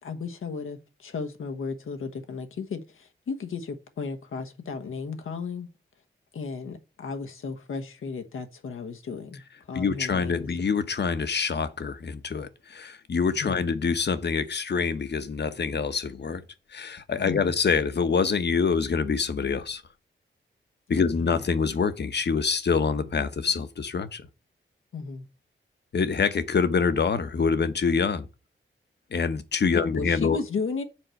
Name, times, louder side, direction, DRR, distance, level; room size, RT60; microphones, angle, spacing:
voice 1, 0.0-5.7 6.3-10.5 13.4-13.6 17.2-17.5 20.9-21.0 24.9-25.3 29.7-30.8, left 5 dB, 90° left, 1.3 m, -34 dB
voice 2, 9.7-16.4 16.7-19.8 20.9-24.3 25.9-28.3 29.1-30.4, left 5 dB, 55° left, 1.1 m, -25 dB
7.6 x 4.4 x 6.5 m
wide cardioid pair, 95°, 21 cm